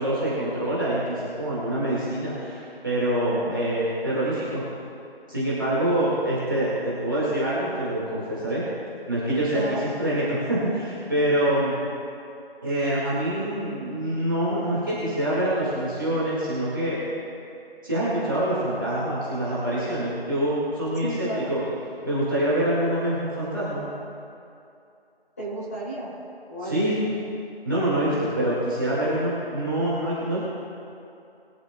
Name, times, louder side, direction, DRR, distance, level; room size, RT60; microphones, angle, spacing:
voice 1, 0.0-4.6 5.3-8.7 9.1-11.8 12.6-17.0 17.8-21.7 22.0-23.8 26.6-27.0 27.6-30.4, right 1 dB, 20° right, -9 dB, 1.8 m, -25 dB
voice 2, 21.0-21.5 25.4-26.1 26.5-26.9 30.3-30.4, right 1 dB, 15° left, -10 dB, 2.8 m, -32 dB
21.5 x 11.0 x 2.3 m, 2.6 s
figure-of-eight pair, 170°, 31 cm